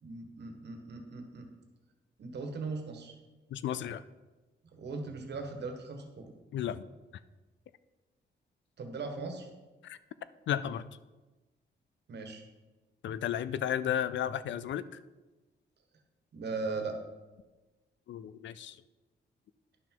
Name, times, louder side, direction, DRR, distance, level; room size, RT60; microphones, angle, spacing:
voice 1, 0.0-1.4 2.2-3.1 4.7-6.3 8.8-9.5 12.1-12.4 16.3-17.0, right 3 dB, 65° right, 4 dB, 1.4 m, -39 dB
voice 2, 3.5-4.0 6.5-6.8 9.8-10.0 10.5-10.9 13.0-14.8 18.1-18.8, left 10 dB, 80° left, 16 dB, 0.4 m, -33 dB
10.5 x 6.0 x 4.6 m, 1.2 s
cardioid pair, 120°, 19 cm